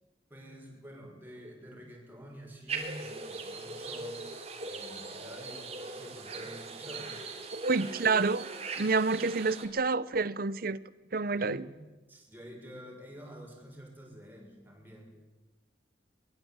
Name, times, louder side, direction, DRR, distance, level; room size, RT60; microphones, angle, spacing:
voice 1, 0.3-7.2 11.3-11.8 12.1-15.1, equal, 10° right, 6.6 m, -49 dB
sound 1, 2.7-9.7, right 3 dB, 35° right, 3.3 m, -40 dB
voice 2, 7.6-8.5 8.8-10.8 11.1-11.7, right 4 dB, 55° right, 0.8 m, -28 dB
23.0 x 21.0 x 8.9 m
head